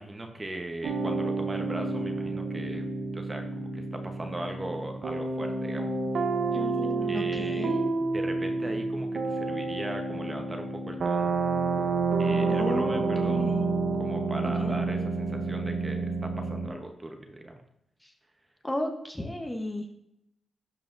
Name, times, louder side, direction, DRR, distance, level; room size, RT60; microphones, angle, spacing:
voice 1, 0.0-2.8 3.1-5.9 7.1-7.8 8.1-11.3 12.2-13.5 14.0-17.5, right 1 dB, 20° right, 4 dB, 0.9 m, -38 dB
sound 1, 0.8-16.7, right 3 dB, 65° right, 0.8 m, -29 dB
voice 2, 6.5-7.8 12.5-13.6 14.6-14.8 18.6-20.0, left 1 dB, 15° left, 3 dB, 0.9 m, -34 dB
11.5 x 4.9 x 2.6 m, 0.81 s
cardioid pair, 75°, 0 cm